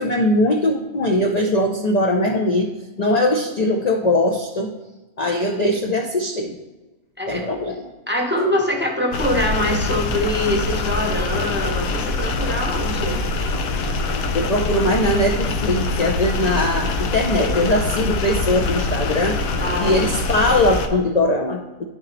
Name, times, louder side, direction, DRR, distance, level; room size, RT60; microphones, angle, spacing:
voice 1, 0.0-2.7 3.0-4.7 5.2-6.6 7.3-7.8 14.3-19.4 19.8-21.8, left 1 dB, 45° left, 1 dB, 0.5 m, -20 dB
voice 2, 7.2-7.5 8.1-13.2 19.6-20.0, left 1 dB, 10° right, 0 dB, 0.8 m, -24 dB
sound 1, 9.1-20.9, left 3 dB, 90° left, 1.1 m, -24 dB
10.5 x 4.2 x 3.9 m, 1.1 s
omnidirectional pair, 1.4 m